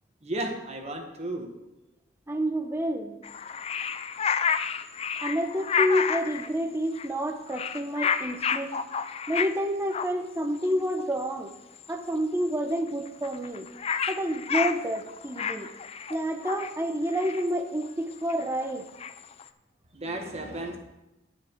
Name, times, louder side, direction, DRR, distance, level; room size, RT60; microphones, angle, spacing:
voice 1, 0.2-1.5 19.9-20.8, right 1 dB, 35° right, 3 dB, 1.3 m, -34 dB
voice 2, 2.3-3.2 5.2-8.7 9.3-11.5 11.9-13.7 14.1-15.7 16.1-18.9, equal, 10° right, 5 dB, 0.8 m, -29 dB
sound 1, 3.2-6.5 7.0-7.2 7.5-9.6 9.9-10.1 10.7-10.8 11.0-11.2 11.5-11.9 12.1-12.2 12.4-12.5 12.7-19.4, left 6 dB, 30° left, 0.4 m, -30 dB
9.5 x 8.5 x 4.5 m, 0.95 s
head